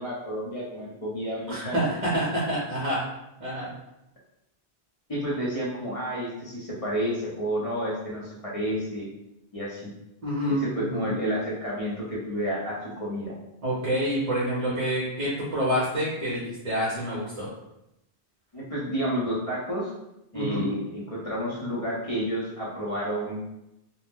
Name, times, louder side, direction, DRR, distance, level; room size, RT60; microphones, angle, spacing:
voice 1, 0.0-1.8 3.5-3.7 5.1-9.1 9.5-9.9 10.6-13.3 18.5-19.9 20.3-23.4, equal, 35° left, -6 dB, 0.7 m, -30 dB
voice 2, 1.5-3.0 3.4-3.7 10.2-11.0 13.6-17.5 20.3-20.7, equal, 45° right, -6 dB, 0.7 m, -27 dB
2.7 x 2.0 x 3.4 m, 0.87 s
omnidirectional pair, 1.2 m